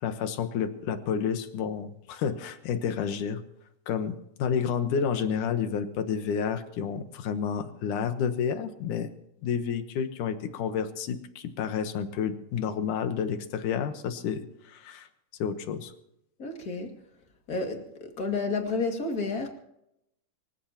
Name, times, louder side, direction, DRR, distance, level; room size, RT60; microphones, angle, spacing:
voice 1, 0.0-3.4 3.9-9.1 9.4-15.1 15.4-15.9, left 7 dB, 70° left, 9 dB, 2.6 m, -30 dB
voice 2, 16.4-17.0 17.5-19.5, left 3 dB, 30° left, 3 dB, 2.2 m, -31 dB
25.0 x 15.5 x 3.0 m, 0.79 s
omnidirectional pair, 3.9 m